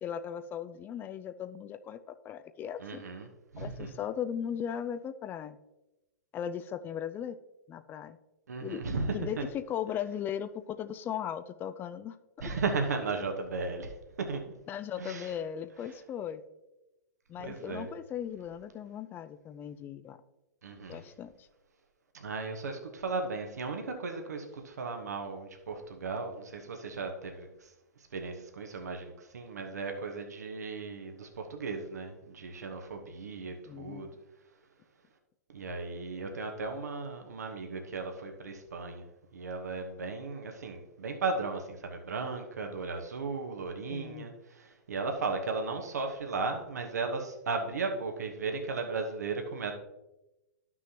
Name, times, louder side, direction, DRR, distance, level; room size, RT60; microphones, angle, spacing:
voice 1, 0.0-3.0 3.6-5.6 6.3-7.4 7.7-8.2 8.6-12.2 14.7-16.4 17.3-20.2 20.9-21.3 33.6-34.1 43.9-44.3, left 9 dB, 20° left, 12 dB, 0.4 m, -37 dB
voice 2, 2.8-3.9 8.5-9.4 12.4-14.5 15.0-15.3 17.4-17.9 20.6-21.0 22.1-27.7 28.1-34.1 35.5-39.1 39.3-49.7, right 4 dB, 75° right, 4 dB, 1.1 m, -36 dB
12.0 x 6.1 x 2.9 m, 0.98 s
figure-of-eight pair, 115°, 9 cm